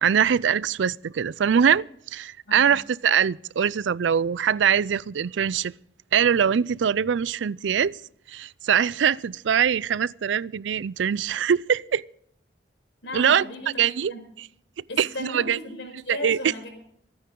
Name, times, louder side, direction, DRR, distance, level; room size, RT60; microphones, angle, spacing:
voice 1, 0.0-5.7 6.1-8.0 8.3-12.0 13.1-13.4 13.8-14.1 15.0-15.6 16.1-16.4, right 8 dB, 90° right, 0.4 m, -23 dB
voice 2, 13.0-14.3 14.9-16.7, left 1 dB, 75° left, 5.0 m, -36 dB
26.5 x 9.5 x 3.8 m
head